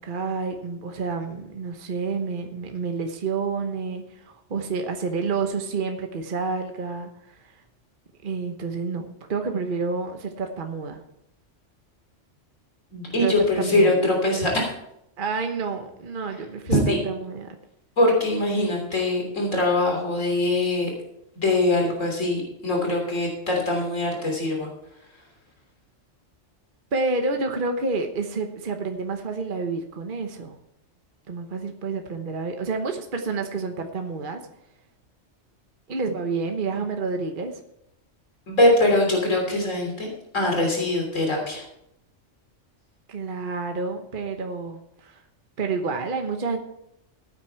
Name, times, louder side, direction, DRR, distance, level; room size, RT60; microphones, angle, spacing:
voice 1, 0.0-7.6 8.2-11.0 13.1-14.0 15.2-17.5 26.9-30.6 31.3-34.4 35.9-37.6 43.1-45.2 45.6-46.6, right 4 dB, 45° right, 4 dB, 1.2 m, -29 dB
voice 2, 12.9-14.7 16.9-17.0 18.0-20.9 21.4-24.7 38.5-40.1 40.3-41.6, left 2 dB, 85° left, 0 dB, 3.5 m, -22 dB
15.5 x 9.1 x 4.5 m, 0.80 s
omnidirectional pair, 1.3 m